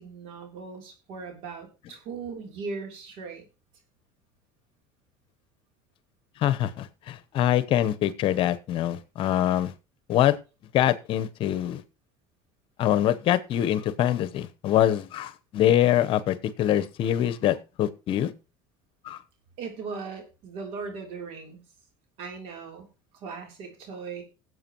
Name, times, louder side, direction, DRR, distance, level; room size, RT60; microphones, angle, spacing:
voice 1, 0.0-3.5 19.6-21.6 22.2-22.9 23.2-24.2, right 4 dB, 65° right, 3 dB, 3.3 m, -38 dB
voice 2, 6.4-9.7 10.1-10.4 10.7-11.8 12.8-18.3 19.0-19.2, left 12 dB, 55° left, 14 dB, 0.9 m, -24 dB
19.0 x 7.8 x 3.0 m, 0.30 s
supercardioid pair, 100°, 11 cm